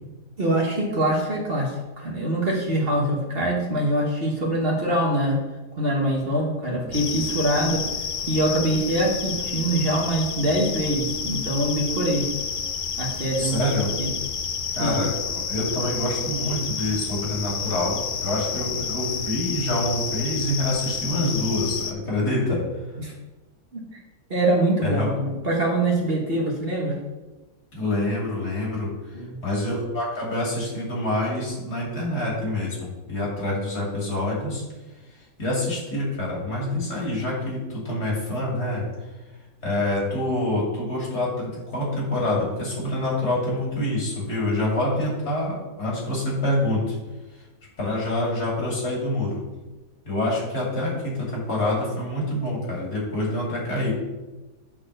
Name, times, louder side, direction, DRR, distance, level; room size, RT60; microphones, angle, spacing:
voice 1, 0.4-5.4 5.7-7.9 8.3-12.3 13.0-13.6 14.0-14.1 14.8-15.0 23.0-23.1 23.7-24.0 24.3-27.0 29.1-29.4, right 1 dB, 40° right, -2 dB, 1.4 m, -24 dB
sound 1, 6.9-21.9, left 6 dB, 85° left, 0.4 m, -30 dB
voice 2, 13.4-13.9 14.7-22.6 24.8-25.1 27.7-28.9 29.4-34.6 35.4-38.8 39.6-47.0 47.8-49.4 50.0-53.9, left 1 dB, 70° left, -4 dB, 3.2 m, -26 dB
7.7 x 4.2 x 6.5 m, 1.1 s
omnidirectional pair, 1.7 m